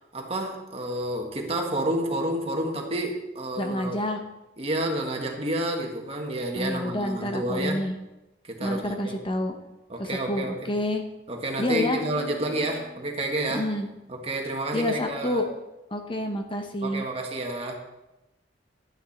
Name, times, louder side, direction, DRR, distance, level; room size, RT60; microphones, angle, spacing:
voice 1, 0.1-4.0 4.6-7.9 8.4-9.2 9.9-10.7 11.3-13.7 14.1-15.4 16.2-16.3 16.8-17.7, right 1 dB, 35° right, 1 dB, 1.7 m, -30 dB
voice 2, 3.6-4.2 6.5-7.9 8.6-9.5 10.0-11.0 11.6-12.0 13.5-13.9 14.7-15.5 15.9-17.0, left 1 dB, 30° left, 5 dB, 0.9 m, -28 dB
Marimba xylophone / Wood, 11.6-13.8, left 1 dB, 80° left, 3.2 m, -42 dB
12.0 x 9.3 x 4.3 m, 0.97 s
head